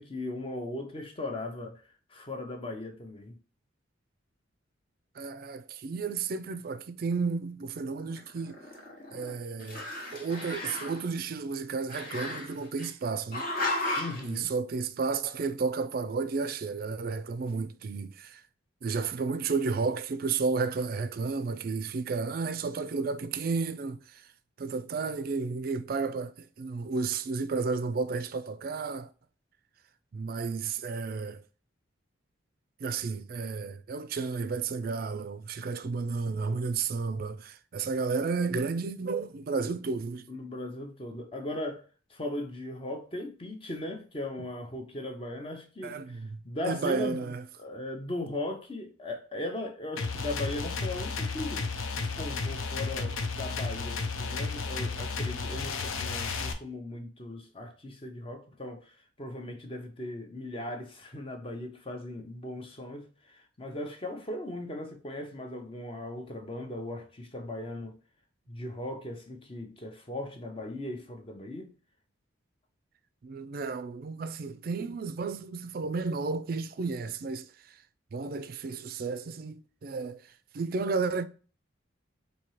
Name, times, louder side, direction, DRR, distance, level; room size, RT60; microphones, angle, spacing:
voice 1, 0.0-3.4 14.0-14.5 40.3-41.8 42.1-47.3 47.6-68.0 68.5-71.7, left 1 dB, 25° left, 0.7 m, -38 dB
voice 2, 5.2-8.6 9.1-13.5 14.2-18.4 18.8-24.3 24.6-29.1 30.1-31.4 32.8-40.3 44.4-44.5 45.8-47.4 73.2-77.8 78.1-81.2, right 4 dB, 45° right, 0.3 m, -32 dB
Growling, 8.1-9.3 9.6-11.0 11.9-12.9 13.3-14.3, left 2 dB, 45° left, 1.0 m, -34 dB
sound 1, 50.0-56.5, left 4 dB, 85° left, 0.6 m, -33 dB
4.3 x 2.7 x 3.1 m
head